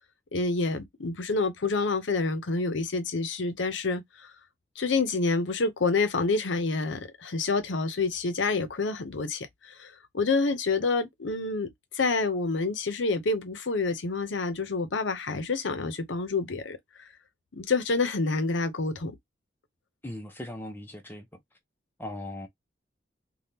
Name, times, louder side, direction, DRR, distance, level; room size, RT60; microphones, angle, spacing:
voice 1, 0.3-4.3 4.8-16.8 17.5-19.2, left 3 dB, 80° left, 0.7 m, -28 dB
voice 2, 20.0-21.3 22.0-22.5, left 1 dB, 10° left, 0.7 m, -38 dB
3.4 x 2.3 x 2.8 m
head